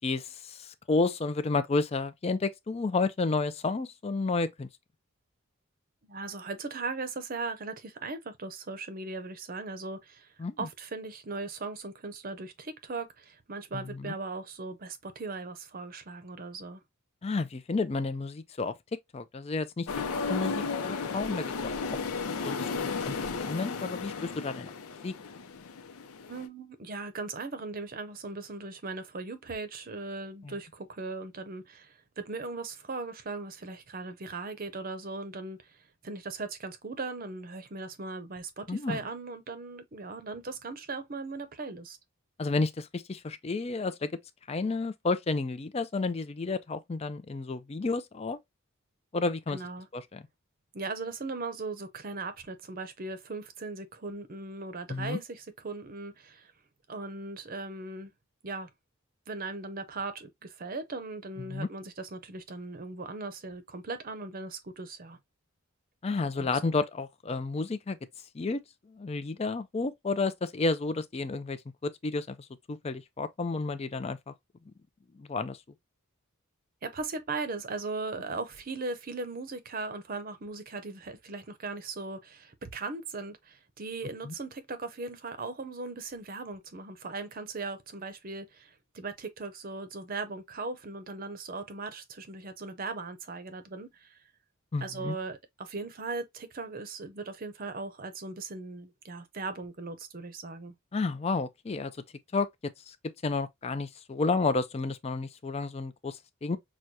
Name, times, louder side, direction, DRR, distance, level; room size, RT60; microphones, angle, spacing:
voice 1, 0.0-4.7 10.4-10.7 13.7-14.1 17.2-18.7 19.1-19.9 20.3-22.0 22.3-24.7 25.0-25.1 30.4-30.5 38.7-39.0 42.4-44.1 44.5-48.4 49.1-49.6 49.9-50.2 54.9-55.2 61.4-61.7 66.0-68.0 68.3-68.6 68.9-72.4 72.7-74.3 75.2-75.6 84.2-84.3 94.7-95.2 100.9-101.9 102.3-102.5 102.9-103.0 103.2-106.6, left 3 dB, 30° left, 0.4 m, -31 dB
voice 2, 6.0-10.3 10.6-16.8 26.3-35.6 36.0-42.0 49.5-49.9 50.7-56.5 56.9-58.1 58.4-58.7 59.3-65.2 66.4-66.6 76.8-94.2 94.8-100.7, right 3 dB, 40° right, 0.7 m, -38 dB
sound 1, 19.9-26.5, left 4 dB, 90° left, 0.6 m, -34 dB
6.1 x 2.2 x 2.7 m
head